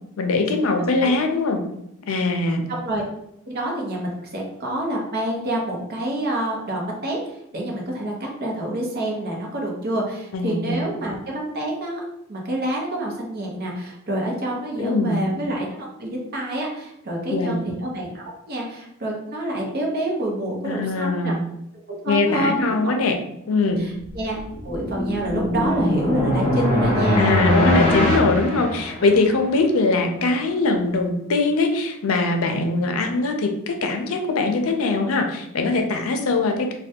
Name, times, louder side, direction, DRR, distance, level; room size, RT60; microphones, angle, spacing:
voice 1, 0.2-1.6 2.1-2.7 10.3-10.8 14.8-15.2 17.3-17.6 20.6-21.4 22.1-23.2 23.5-23.8 27.2-36.7, left 3 dB, 75° left, 4 dB, 0.5 m, -21 dB
voice 2, 2.7-3.0 3.5-12.0 12.3-21.3 21.9-22.9 23.8-24.4 24.6-27.4, right 1 dB, 50° right, -1 dB, 0.8 m, -27 dB
sound 1, 24.2-29.4, left 1 dB, 30° left, 0.7 m, -22 dB
3.3 x 2.2 x 2.7 m, 0.79 s
head